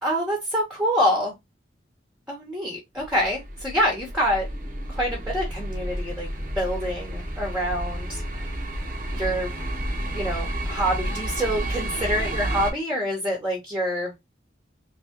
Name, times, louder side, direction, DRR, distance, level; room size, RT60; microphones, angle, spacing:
voice 1, 0.0-1.3 2.3-4.5 4.9-6.3 6.6-8.2 9.1-9.5 10.1-14.1, equal, 5° right, -2 dB, 1.1 m, -26 dB
sound 1, 3.0-12.7, right 1 dB, 45° right, 0.8 m, -31 dB
3.4 x 3.0 x 2.9 m, 0.19 s
head